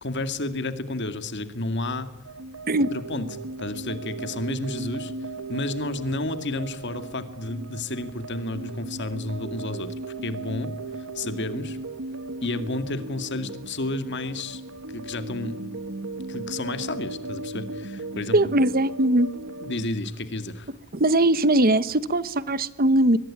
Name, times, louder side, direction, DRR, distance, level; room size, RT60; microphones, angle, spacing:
voice 1, 0.0-2.1 2.9-9.9 10.2-10.7 11.1-11.8 12.4-14.6 14.9-15.7 16.3-18.4 19.6-20.7, left 2 dB, 55° left, 10 dB, 2.2 m, -31 dB
sound 1, 2.2-19.9, right 3 dB, 65° right, 1.3 m, -37 dB
voice 2, 18.3-19.3 20.9-23.2, right 1 dB, 45° right, 15 dB, 1.1 m, -20 dB
23.0 x 21.0 x 10.0 m, 0.97 s
head